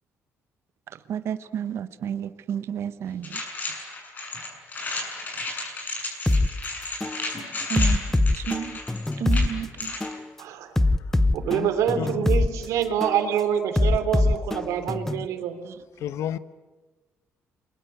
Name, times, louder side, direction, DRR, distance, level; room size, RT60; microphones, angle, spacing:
voice 1, 1.1-3.4 7.7-8.8 9.2-9.9 15.6-15.7, right 9 dB, 55° right, 1.1 m, -31 dB
sound 1, 3.2-10.1, left 2 dB, 35° left, 7.4 m, -33 dB
sound 2, 6.3-6.5 7.0-7.2 7.8-9.5 10.0-10.2 10.8-12.5 13.0-13.2 13.8-15.3, left 2 dB, 5° left, 0.9 m, -22 dB
voice 2, 10.4-10.7 11.3-15.6, right 9 dB, 85° right, 3.2 m, -26 dB
voice 3, 12.0-12.3 16.0-16.4, left 10 dB, 75° left, 1.1 m, -31 dB
30.0 x 23.0 x 8.1 m
cardioid pair, 135°, 5 cm